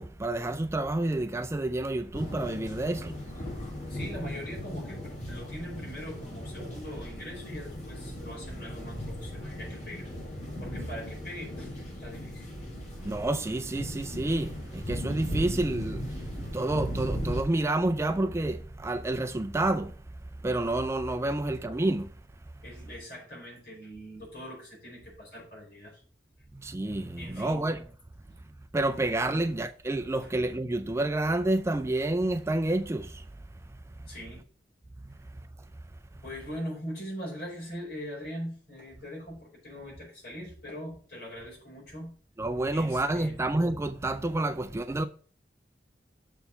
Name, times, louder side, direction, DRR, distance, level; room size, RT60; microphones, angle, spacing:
voice 1, 0.0-3.2 13.0-19.9 20.4-22.1 26.5-27.8 28.7-33.3 35.1-35.2 42.4-45.1, right 2 dB, 15° right, 0.4 m, -29 dB
sound 1, 2.1-17.4, equal, 40° left, 2.7 m, -37 dB
voice 2, 3.9-10.1 10.6-12.5 22.6-26.0 27.2-27.6 28.3-28.4 29.3-29.5 30.2-30.3 34.1-34.4 36.2-42.1 42.7-43.4, equal, 60° left, 4.7 m, -41 dB
6.9 x 4.5 x 6.6 m
head